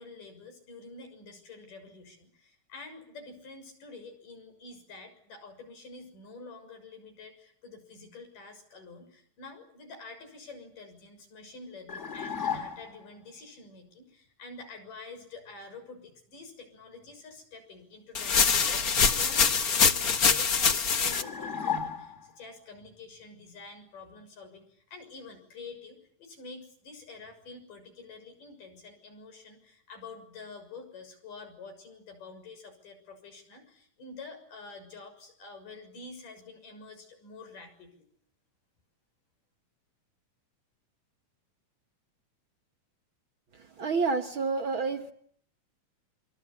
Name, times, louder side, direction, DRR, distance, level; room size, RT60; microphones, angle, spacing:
voice 1, 0.0-38.0, left 3 dB, 90° left, 7 dB, 8.2 m, -48 dB
sound 1, 11.9-13.1 21.1-22.4, left 7 dB, 25° left, 2.6 m, -34 dB
sound 2, 18.2-21.2, left 5 dB, 45° left, 1.2 m, -24 dB
voice 2, 43.8-45.1, right 4 dB, 50° right, 7 dB, 1.7 m, -28 dB
27.5 x 25.5 x 8.4 m, 0.65 s
omnidirectional pair, 3.6 m